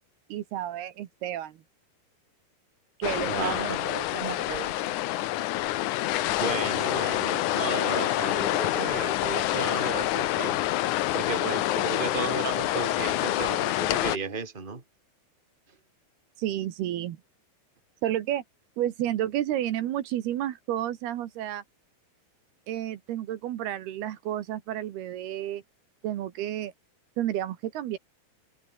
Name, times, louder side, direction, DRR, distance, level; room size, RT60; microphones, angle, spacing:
voice 1, 0.3-1.6 3.0-4.9 16.4-17.2 18.0-18.4 18.8-21.6 22.7-25.6 26.0-26.7 27.2-28.0, right 12 dB, 75° right, 3.4 m, -31 dB
sound 1, 3.0-14.2, left 15 dB, 80° left, 1.7 m, -27 dB
voice 2, 3.3-3.8 6.4-10.6 11.1-14.8, right 5 dB, 15° right, 2.8 m, -34 dB
omnidirectional pair, 4.7 m